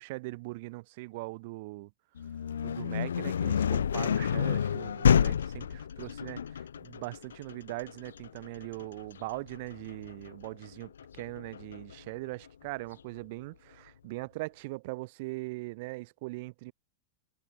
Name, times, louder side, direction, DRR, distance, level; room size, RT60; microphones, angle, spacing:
voice 1, 0.0-1.9 2.6-16.7, right 23 dB, 50° right, 6.3 m, -40 dB
sound 1, 2.2-11.9, left 8 dB, 65° left, 1.9 m, -30 dB
figure-of-eight pair, 90°, 0 cm